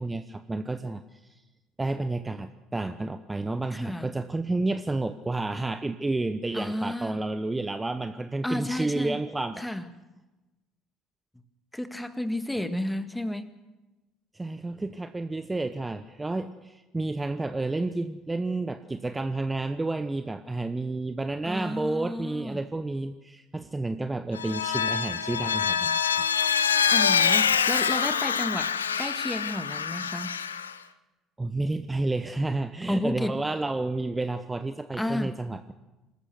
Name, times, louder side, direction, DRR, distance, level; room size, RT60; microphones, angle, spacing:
voice 1, 0.0-1.4 1.8-9.6 14.3-26.3 31.4-35.7, right 2 dB, 15° right, 10 dB, 1.0 m, -30 dB
voice 2, 3.7-4.1 6.5-7.2 8.4-9.2 9.6-9.8 11.7-13.6 21.5-22.6 26.9-30.4 32.9-33.3 35.0-35.3, left 1 dB, 5° left, 10 dB, 1.8 m, -32 dB
Vehicle, 24.3-30.7, left 7 dB, 85° left, 0.7 m, -25 dB
26.0 x 14.0 x 7.9 m, 1.1 s
figure-of-eight pair, 60°, 0 cm